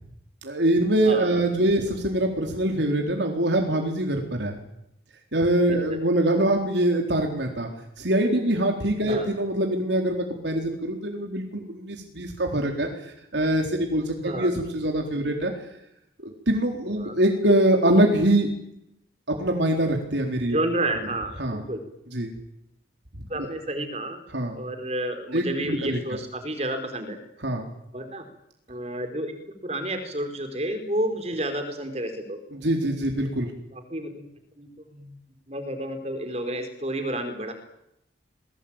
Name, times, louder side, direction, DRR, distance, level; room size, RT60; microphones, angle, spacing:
voice 1, 0.4-4.6 5.3-7.7 8.0-15.5 16.2-18.5 19.3-20.6 21.4-21.6 22.1-22.3 23.1-23.5 24.3-24.6 25.3-26.0 27.4-27.7 32.5-33.5, right 1 dB, 80° right, 2 dB, 4.2 m, -24 dB
voice 2, 1.0-1.6 9.0-9.3 14.2-14.5 16.9-17.2 20.5-21.8 23.3-24.2 24.5-27.2 27.9-28.2 28.7-29.4 29.6-32.4 32.8-33.0 33.5-34.3 34.5-35.1 35.5-37.5, right 1 dB, 35° right, 7 dB, 4.7 m, -30 dB
28.5 x 21.5 x 9.1 m, 0.81 s
head